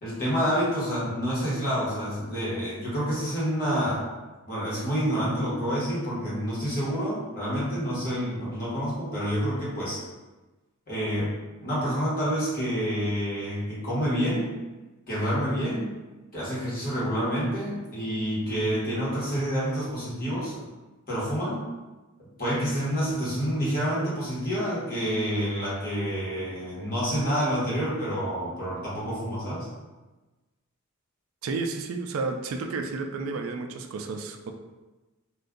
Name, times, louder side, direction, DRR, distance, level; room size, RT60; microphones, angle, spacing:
voice 1, 0.0-4.1 4.4-10.0 10.9-11.3 11.6-14.5 15.1-15.9 16.3-20.7 21.1-21.6 22.4-29.7, equal, 45° left, -8 dB, 1.3 m, -28 dB
voice 2, 31.4-34.5, right 4 dB, 75° right, 5 dB, 0.3 m, -31 dB
2.6 x 2.3 x 3.6 m, 1.2 s
head